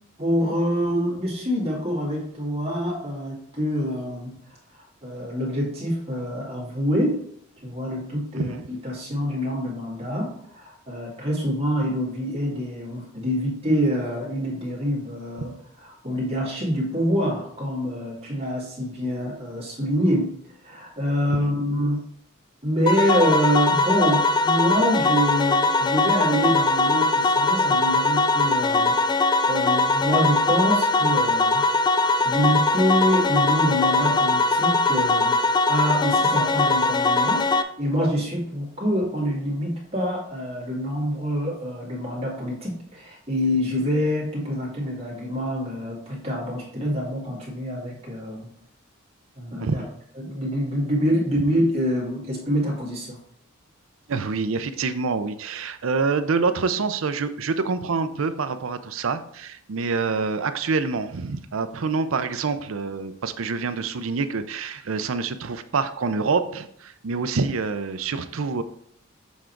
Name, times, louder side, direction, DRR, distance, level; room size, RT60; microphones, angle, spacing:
voice 1, 0.2-4.4 4.7-7.2 7.6-15.5 15.8-20.3 20.6-22.0 22.6-29.0 29.5-31.6 31.9-35.4 35.7-37.5 37.8-48.5 49.4-49.8 50.2-53.2, equal, 30° right, -4 dB, 2.2 m, -26 dB
sound 1, 22.9-37.6, left 3 dB, 20° left, 0.3 m, -21 dB
voice 2, 54.1-68.6, right 4 dB, 75° right, 11 dB, 0.5 m, -26 dB
7.2 x 3.7 x 4.5 m, 0.65 s
head